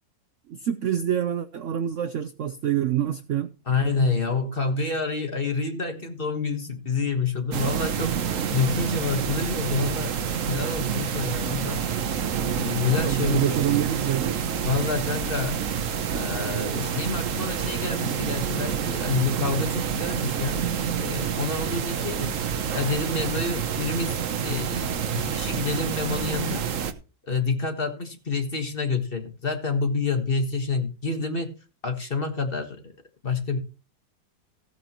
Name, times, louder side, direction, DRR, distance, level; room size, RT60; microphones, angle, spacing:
voice 1, 0.5-3.5 12.9-14.3, right 10 dB, 75° right, 0.6 m, -26 dB
voice 2, 3.7-10.1 10.5-11.9 12.5-13.6 14.6-15.6 16.1-20.7 20.9-22.4 22.7-26.6 27.3-31.5 31.8-32.8 33.2-33.6, left 4 dB, 30° left, 1.5 m, -28 dB
sound 1, 7.5-26.9, right 7 dB, 55° right, 1.0 m, -28 dB
15.5 x 9.1 x 3.0 m
omnidirectional pair, 2.0 m